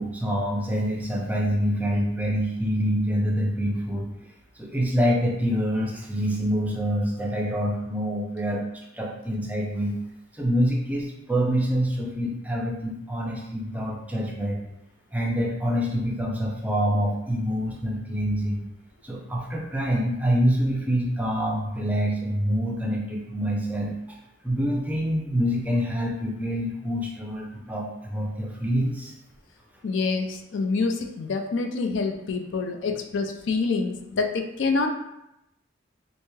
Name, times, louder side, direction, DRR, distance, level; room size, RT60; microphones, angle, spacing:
voice 1, 0.0-4.1 4.6-8.6 8.9-9.9 10.3-14.7 15.1-18.7 19.0-23.9 24.4-29.1, equal, 10° right, -2 dB, 0.5 m, -26 dB
voice 2, 29.8-34.9, left 4 dB, 70° left, 5 dB, 0.4 m, -26 dB
3.3 x 2.7 x 3.1 m, 0.86 s
head